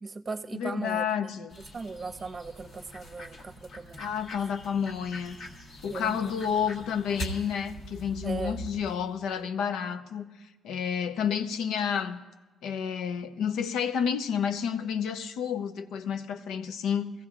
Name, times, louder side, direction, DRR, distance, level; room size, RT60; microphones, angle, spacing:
voice 1, 0.0-1.3 1.7-4.1 5.9-6.2 8.2-8.6, right 4 dB, 35° right, 0.7 m, -38 dB
voice 2, 0.5-1.6 4.0-5.4 5.8-10.3 10.6-12.2 12.6-17.1, left 7 dB, 85° left, 0.7 m, -30 dB
sound 1, 1.5-9.2, equal, 70° left, 1.8 m, -43 dB
22.0 x 15.5 x 2.4 m
cardioid pair, 90°, 0 cm